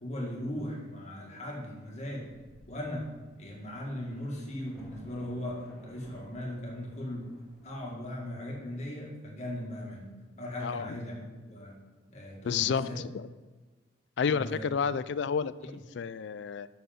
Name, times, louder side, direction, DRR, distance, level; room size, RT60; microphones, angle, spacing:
voice 1, 0.0-2.3 2.7-3.1 3.4-7.3 7.6-11.8 12.1-13.0 14.3-14.7 15.6-15.7, left 1 dB, 35° left, -2 dB, 2.0 m, -38 dB
Thunder, 1.8-1.9 2.2-8.0, equal, ahead, 2.1 m, -56 dB
voice 2, 10.6-11.0 12.5-13.3 14.2-16.7, left 6 dB, 60° left, 16 dB, 0.3 m, -31 dB
7.8 x 6.4 x 5.3 m, 1.3 s
head